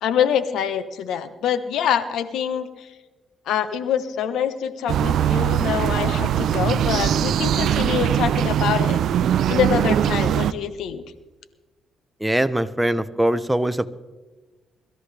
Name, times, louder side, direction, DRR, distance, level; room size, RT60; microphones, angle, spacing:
voice 1, 0.0-2.9 3.5-9.0 9.5-11.0, left 8 dB, 80° left, 12 dB, 0.9 m, -25 dB
sound 1, 4.9-10.5, right 10 dB, 70° right, 0.5 m, -21 dB
voice 2, 12.2-13.9, right 1 dB, 10° right, 12 dB, 0.7 m, -22 dB
23.0 x 13.0 x 3.4 m, 1.2 s
cardioid pair, 90°, 0 cm